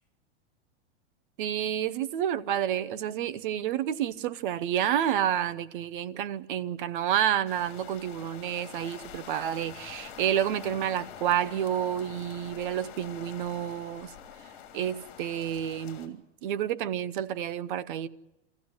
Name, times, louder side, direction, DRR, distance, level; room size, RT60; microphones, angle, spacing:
voice 1, 1.4-14.1 14.7-18.1, right 10 dB, 45° right, 0.8 m, -29 dB
sound 1, 7.5-16.1, left 9 dB, 45° left, 3.2 m, -46 dB
24.5 x 15.0 x 9.5 m
supercardioid pair, 175°, 35 cm